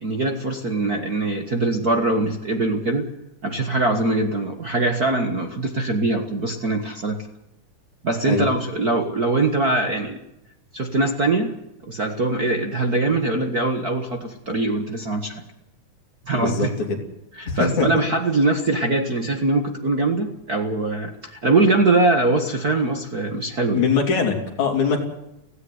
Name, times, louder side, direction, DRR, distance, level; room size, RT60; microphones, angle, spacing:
voice 1, 0.0-3.0 3.4-7.2 8.0-10.2 10.7-11.5 11.9-15.4 16.3-16.7 17.4-23.8, right 2 dB, 40° right, 5 dB, 1.6 m, -22 dB
voice 2, 16.3-17.0 17.5-18.0 23.7-25.0, left 5 dB, 70° left, 2 dB, 4.8 m, -22 dB
17.0 x 17.0 x 9.5 m, 0.85 s
omnidirectional pair, 3.5 m